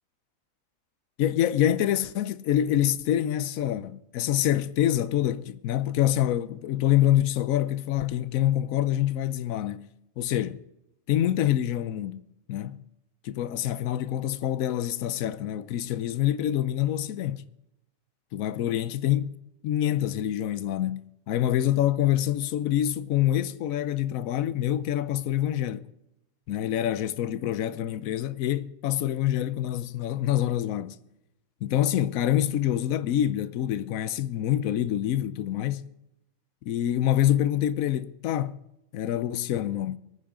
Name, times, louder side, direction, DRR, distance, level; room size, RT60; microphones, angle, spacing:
voice 1, 1.2-9.9 10.2-10.6 11.1-12.2 12.5-12.8 13.2-17.4 18.3-19.3 19.6-25.9 26.5-31.0 31.6-35.9 36.6-38.6 38.9-40.0, left 12 dB, 85° left, 1.1 m, -26 dB
24.0 x 9.6 x 3.7 m
omnidirectional pair, 1.4 m